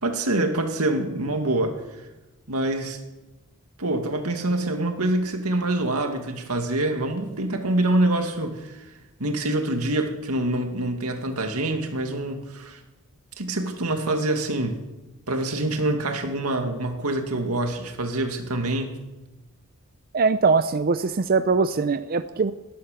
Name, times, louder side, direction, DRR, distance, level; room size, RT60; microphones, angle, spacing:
voice 1, 0.0-2.1 2.5-3.0 3.8-8.8 9.2-12.8 13.4-14.8 15.3-19.0, right 2 dB, 90° right, 5 dB, 2.2 m, -25 dB
voice 2, 20.1-22.5, right 4 dB, 45° right, 11 dB, 0.5 m, -21 dB
17.0 x 11.5 x 6.7 m, 1.1 s
head